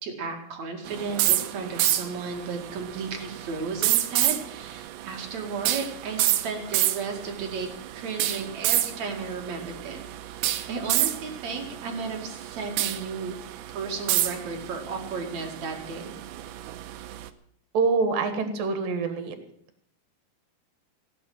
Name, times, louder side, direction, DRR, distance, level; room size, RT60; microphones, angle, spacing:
voice 1, 0.0-10.0 10.7-13.4 13.7-16.0, right 4 dB, 50° right, 2 dB, 3.1 m, -34 dB
sound 1, 0.9-17.3, right 14 dB, 85° right, 2.7 m, -29 dB
voice 2, 17.7-19.4, right 4 dB, 65° right, 8 dB, 3.3 m, -25 dB
17.0 x 8.8 x 7.9 m, 0.67 s
omnidirectional pair, 4.4 m